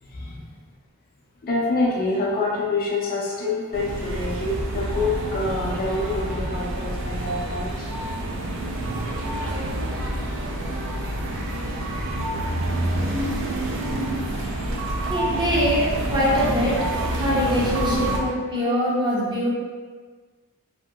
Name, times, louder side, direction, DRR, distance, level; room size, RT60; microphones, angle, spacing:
voice 1, 0.0-0.5 1.4-7.9 10.2-10.3 11.9-12.1 12.9-13.0 14.2-14.9 17.8-18.0, left 2 dB, 40° left, -3 dB, 0.5 m, -27 dB
sound 1, 3.7-18.2, right 1 dB, 60° right, 0.5 m, -27 dB
voice 2, 15.1-16.8 17.1-19.6, equal, 20° right, -7 dB, 0.6 m, -23 dB
3.0 x 2.7 x 2.2 m, 1.4 s
head